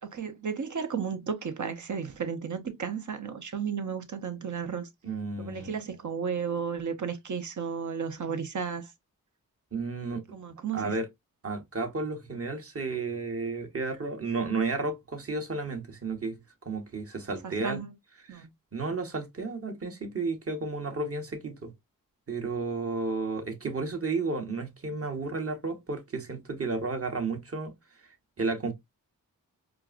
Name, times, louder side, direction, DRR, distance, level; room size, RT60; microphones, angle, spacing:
voice 1, 0.0-4.9 5.4-8.9 10.3-11.0 17.4-17.9 18.3-18.5, right 6 dB, 55° right, 0.9 m, -33 dB
voice 2, 5.0-5.7 9.7-10.4 10.7-11.1 11.4-16.4 16.6-17.8 18.3-18.4 18.7-21.7 22.3-27.7 28.4-28.7, right 3 dB, 40° right, 1.2 m, -32 dB
4.5 x 2.5 x 2.5 m
cardioid pair, 60°, 35 cm